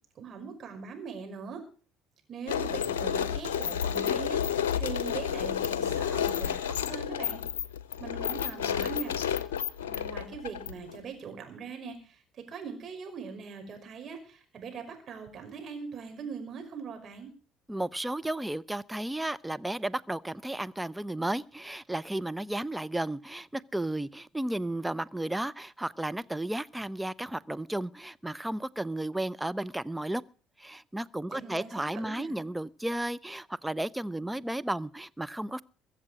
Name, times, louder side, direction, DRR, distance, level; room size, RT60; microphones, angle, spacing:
voice 1, 0.2-1.6 2.3-7.4 8.0-9.1 9.8-17.3 31.3-32.4, right 6 dB, 45° right, 5.4 m, -41 dB
sound 1, 2.5-11.0, left 8 dB, 80° left, 0.7 m, -31 dB
voice 2, 17.7-30.2 30.6-35.6, right 1 dB, 10° right, 0.7 m, -33 dB
22.0 x 7.5 x 6.2 m
hypercardioid pair, 55°, 0 cm